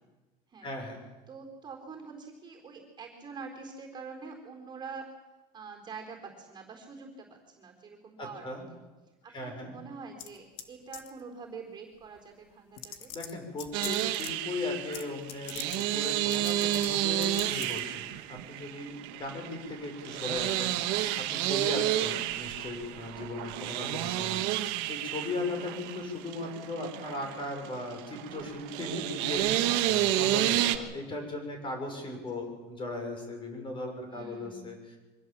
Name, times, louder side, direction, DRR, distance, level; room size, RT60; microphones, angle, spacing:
voice 1, 0.6-1.0 8.2-8.6 9.3-9.7 13.1-24.6 24.9-35.0, left 2 dB, 30° left, 4 dB, 6.0 m, -38 dB
voice 2, 1.3-5.1 5.5-8.6 9.2-13.1 34.1-34.7, right 5 dB, 25° right, 2 dB, 4.0 m, -45 dB
sound 1, 10.2-10.7 10.9-11.2 12.2-12.3 12.8-14.3 14.9-15.0 15.3-15.8 16.3-16.9 17.2-17.8, left 10 dB, 75° left, 1.9 m, -42 dB
sound 2, 13.7-30.8, right 14 dB, 75° right, 1.4 m, -31 dB
24.0 x 16.5 x 7.6 m, 1.2 s
cardioid pair, 145°, 18 cm